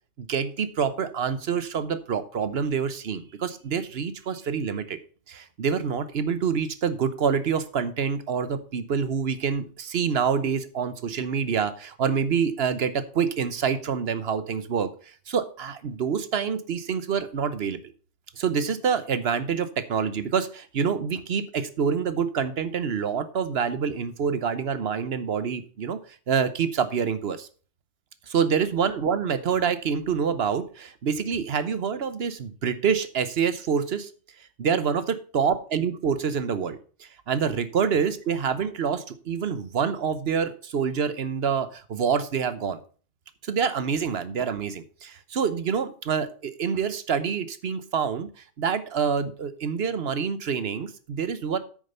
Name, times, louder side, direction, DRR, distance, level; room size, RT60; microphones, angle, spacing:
voice 1, 0.2-5.0 5.3-14.9 15.3-17.8 18.4-26.0 26.3-27.5 28.3-34.1 34.6-42.8 43.4-51.6, right 6 dB, 60° right, 13 dB, 1.0 m, -26 dB
8.7 x 6.7 x 5.4 m, 0.39 s
omnidirectional pair, 1.2 m